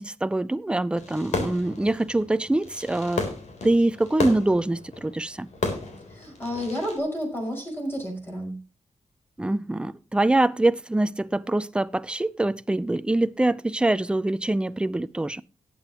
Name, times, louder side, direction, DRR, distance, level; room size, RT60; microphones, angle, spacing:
voice 1, 0.0-3.2 3.6-5.5 9.4-15.4, right 2 dB, 10° right, 0.5 m, -24 dB
Fireworks, 1.0-7.0, left 3 dB, 80° left, 3.5 m, -33 dB
voice 2, 6.1-8.6, equal, 20° left, 5.3 m, -31 dB
18.5 x 8.7 x 2.9 m
wide cardioid pair, 135°, 12 cm